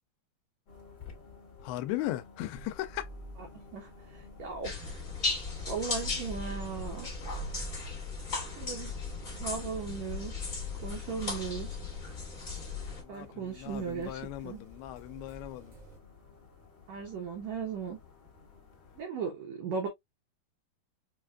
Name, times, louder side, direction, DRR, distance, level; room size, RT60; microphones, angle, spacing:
Ominus machine sound, 0.7-19.0, left 5 dB, 50° left, 1.4 m, -55 dB
voice 1, 1.6-3.1 12.9-15.8, left 14 dB, 85° left, 2.6 m, -38 dB
sound 1, 2.5-16.0, right 3 dB, 65° right, 0.7 m, -49 dB
voice 2, 3.7-5.0 5.5-7.1 8.6-9.0 9.3-10.4 10.8-11.8 13.1-14.6 16.9-18.0 19.0-19.9, right 5 dB, 85° right, 1.5 m, -37 dB
sound 2, 4.6-13.0, left 4 dB, 35° left, 1.2 m, -37 dB
6.1 x 2.4 x 2.2 m
omnidirectional pair, 4.4 m